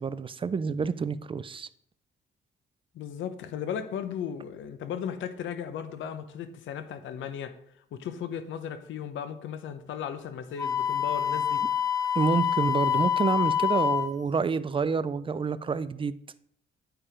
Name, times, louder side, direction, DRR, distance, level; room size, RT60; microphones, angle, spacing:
voice 1, 0.0-1.7 12.2-16.1, right 5 dB, 25° right, 15 dB, 0.4 m, -28 dB
voice 2, 2.9-7.6 7.9-11.6, left 8 dB, 75° left, 10 dB, 0.8 m, -36 dB
Wind instrument woodwind instrument, 10.6-14.1, left 9 dB, 15° left, 0.8 m, -26 dB
8.8 x 4.7 x 5.0 m, 0.68 s
cardioid pair, 90°, 20 cm